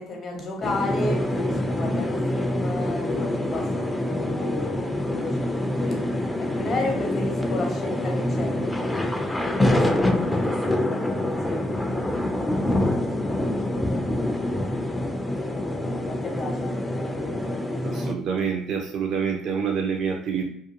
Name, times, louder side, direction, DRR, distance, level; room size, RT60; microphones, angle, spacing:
voice 1, 0.0-5.9 6.4-12.9 13.3-14.8 15.4-18.1, left 2 dB, 50° left, 1 dB, 0.9 m, -34 dB
sound 1, 0.6-18.1, left 1 dB, 10° left, 0.4 m, -26 dB
voice 2, 17.8-20.5, right 6 dB, 60° right, 1 dB, 0.4 m, -27 dB
2.5 x 2.3 x 2.6 m, 0.72 s
hypercardioid pair, 70°, 0 cm